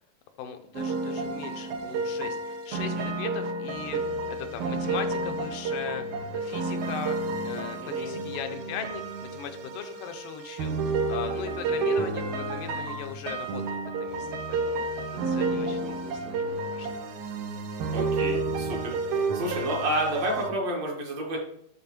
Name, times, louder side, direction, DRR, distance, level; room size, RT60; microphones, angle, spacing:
voice 1, 0.4-6.1 6.3-14.9 15.1-16.9, left 8 dB, 90° left, 6 dB, 2.3 m, -39 dB
sound 1, 0.7-20.5, right 3 dB, 85° right, 1.3 m, -31 dB
voice 2, 15.6-16.0 17.9-21.4, right 1 dB, 60° right, -1 dB, 2.2 m, -31 dB
11.5 x 4.0 x 3.0 m, 0.69 s
omnidirectional pair, 3.7 m